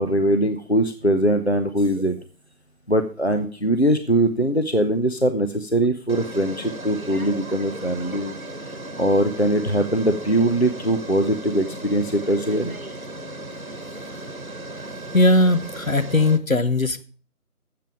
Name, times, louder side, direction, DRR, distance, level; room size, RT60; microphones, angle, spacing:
voice 1, 0.0-2.2 2.9-8.3 9.0-12.8, right 1 dB, 45° left, 8 dB, 0.8 m, -21 dB
sound 1, 1.8-2.2 3.9-4.0 6.1-16.4, right 1 dB, 65° right, 1.2 m, -36 dB
voice 2, 15.1-17.0, left 1 dB, 60° left, 11 dB, 1.1 m, -19 dB
13.0 x 7.7 x 4.9 m, 0.40 s
figure-of-eight pair, 180°, 45 cm